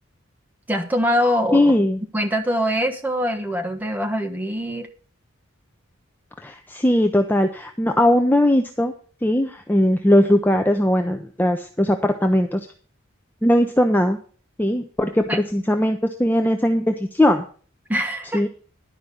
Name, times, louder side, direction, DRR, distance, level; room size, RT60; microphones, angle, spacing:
voice 1, 0.7-1.7 2.1-4.9 15.3-15.4 17.9-18.4, equal, 10° right, 3 dB, 1.2 m, -23 dB
voice 2, 1.5-2.0 6.4-8.9 9.2-12.7 13.4-14.2 14.6-17.4 18.3-18.5, left 1 dB, 10° left, 5 dB, 0.6 m, -19 dB
11.5 x 5.0 x 8.3 m, 0.42 s
head